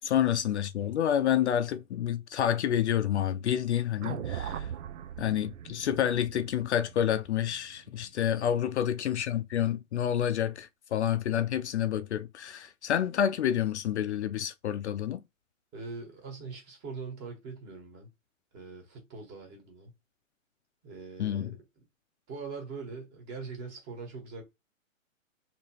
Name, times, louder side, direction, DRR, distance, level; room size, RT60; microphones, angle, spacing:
voice 1, 0.0-4.7 5.2-15.2 21.2-21.5, left 10 dB, 55° left, 0.5 m, -29 dB
sound 1, 4.0-8.3, right 9 dB, 75° right, 0.5 m, -40 dB
voice 2, 15.7-18.1 18.5-19.9 20.8-21.6 22.3-24.4, right 4 dB, 25° right, 1.3 m, -42 dB
3.4 x 2.9 x 2.8 m
hypercardioid pair, 145°, 40 cm